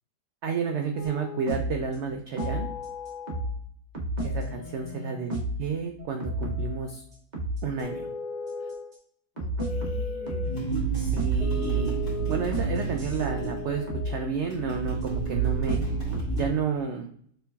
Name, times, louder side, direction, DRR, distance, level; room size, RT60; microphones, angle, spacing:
voice 1, 0.4-2.7 4.2-7.0 7.6-8.1 11.1-12.0 12.3-15.8 16.4-17.1, right 5 dB, 75° right, 4 dB, 0.6 m, -31 dB
sound 1, 0.9-1.8 2.4-3.6 3.9-5.7 6.0-7.0 7.3-8.9 9.4-14.3 15.0-16.5, equal, 35° right, 0.9 m, -33 dB
voice 2, 4.4-5.3 8.6-8.7 9.4-10.5, left 5 dB, 90° left, 6 dB, 1.3 m, -45 dB
sound 2, 10.4-16.5, right 7 dB, 50° left, 2.5 m, -29 dB
6.8 x 3.4 x 2.3 m, 0.63 s
omnidirectional pair, 1.7 m